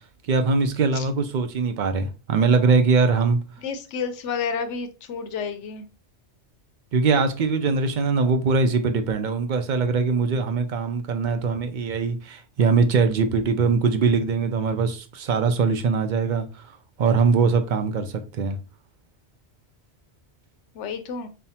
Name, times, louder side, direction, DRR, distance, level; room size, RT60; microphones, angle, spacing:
voice 1, 0.3-3.4 6.9-16.7 17.0-18.6, right 4 dB, 55° right, 0.5 m, -22 dB
voice 2, 3.6-5.8 20.7-21.3, left 6 dB, 85° left, 0.9 m, -30 dB
5.5 x 2.1 x 2.8 m
omnidirectional pair, 1.2 m